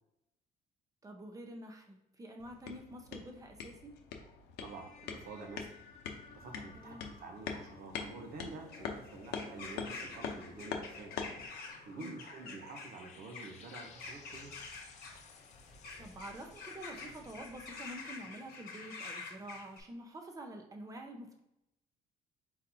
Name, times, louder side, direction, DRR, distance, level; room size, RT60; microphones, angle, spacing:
voice 1, 1.0-3.9 6.7-7.0 12.0-12.2 16.0-21.4, right 1 dB, 20° right, 3 dB, 0.8 m, -48 dB
sound 1, 2.4-11.5, left 6 dB, 80° left, 0.7 m, -44 dB
sound 2, 4.6-18.3, left 5 dB, 40° left, 0.6 m, -57 dB
voice 2, 4.6-5.7 6.1-11.2 11.6-14.5, right 3 dB, 65° right, 3 dB, 1.0 m, -48 dB
sound 3, 6.4-19.8, left 4 dB, 60° left, 1.0 m, -48 dB
4.1 x 4.0 x 2.7 m, 0.87 s
cardioid pair, 110°, 17 cm